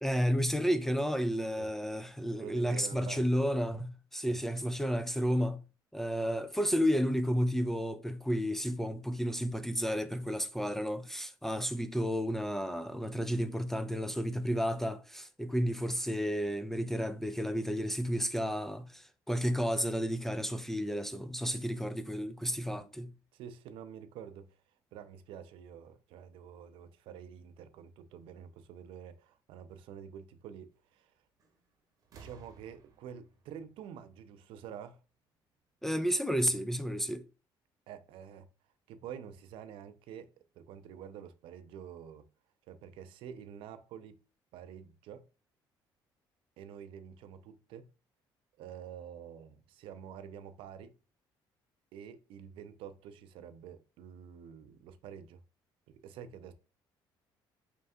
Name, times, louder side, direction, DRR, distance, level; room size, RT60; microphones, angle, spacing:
voice 1, 0.0-5.6 5.9-23.1 35.8-37.2, equal, 5° left, 0.3 m, -32 dB
voice 2, 2.4-3.2 4.3-4.4 23.3-24.6 24.9-31.1 32.1-35.0 37.9-38.5 38.9-42.3 42.7-44.2 44.5-45.3 46.6-47.9 48.6-50.9 51.9-55.4 55.9-56.5, right 8 dB, 80° right, 0.5 m, -48 dB
sound 1, 31.4-31.7 32.0-34.8 35.9-36.0, right 5 dB, 40° right, 0.9 m, -58 dB
4.4 x 3.3 x 2.6 m
cardioid pair, 120°, 9 cm